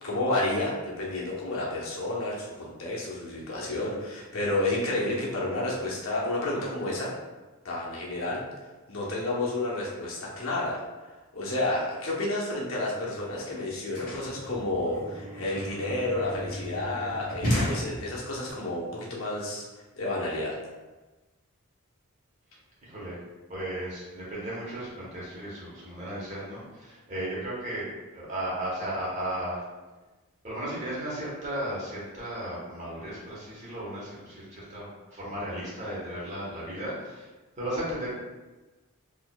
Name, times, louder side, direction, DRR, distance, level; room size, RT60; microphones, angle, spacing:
voice 1, 0.0-7.1 7.6-8.4 8.9-10.8 11.3-19.6 19.9-20.6, left 2 dB, 70° left, -4 dB, 0.8 m, -30 dB
sound 1, 13.3-18.5, equal, 40° left, 1.2 m, -34 dB
voice 2, 22.8-23.2 23.5-27.9 28.1-29.7 30.4-37.3 37.6-38.1, right 1 dB, 35° right, -6 dB, 1.1 m, -35 dB
4.2 x 2.6 x 2.2 m, 1.2 s
head